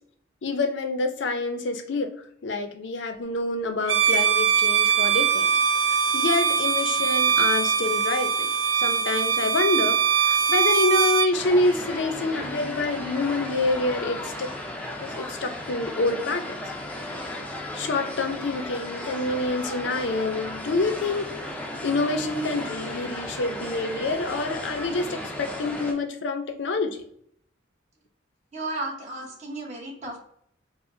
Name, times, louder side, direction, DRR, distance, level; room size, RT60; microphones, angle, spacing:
voice 1, 0.4-2.1 2.4-5.5 6.1-8.5 8.8-14.5 15.0-16.6 17.2-17.4 17.7-21.3 21.8-27.0, left 3 dB, 70° left, 7 dB, 0.5 m, -27 dB
Bowed string instrument, 3.8-11.3, right 6 dB, 75° right, 0.4 m, -22 dB
sound 1, 11.3-25.9, left 1 dB, 5° left, 0.4 m, -35 dB
voice 2, 28.5-30.2, right 2 dB, 40° right, -2 dB, 1.0 m, -34 dB
4.8 x 2.1 x 2.6 m, 0.65 s
head